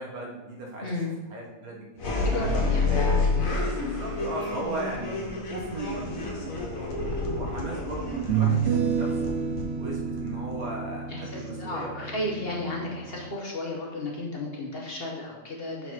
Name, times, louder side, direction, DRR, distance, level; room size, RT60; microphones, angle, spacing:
voice 1, 0.0-0.9 1.3-2.3 2.9-3.2 3.7-9.3 9.8-12.2, right 2 dB, 90° right, -2 dB, 1.7 m, -37 dB
voice 2, 0.8-1.1 2.2-2.9 11.1-15.9, left 2 dB, 45° left, -2 dB, 1.2 m, -33 dB
sound 1, 2.0-10.6, left 3 dB, 70° left, 1.6 m, -29 dB
sound 2, 7.0-7.1 8.1-13.3, right 7 dB, 55° right, 0.9 m, -29 dB
4.8 x 4.7 x 5.9 m, 1.1 s
omnidirectional pair, 1.5 m